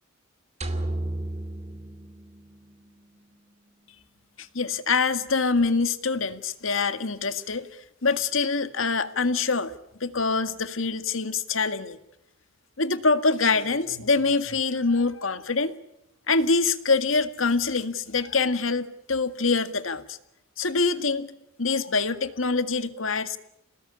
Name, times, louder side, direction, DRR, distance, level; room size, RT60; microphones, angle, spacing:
sound 1, 0.6-2.9, right 1 dB, 35° right, 2.6 m, -33 dB
voice 1, 4.4-7.7 8.0-9.7 10.0-12.0 12.8-15.7 16.3-20.2 20.6-23.4, left 4 dB, 80° left, 11 dB, 1.9 m, -25 dB
29.0 x 19.5 x 10.0 m, 0.84 s
head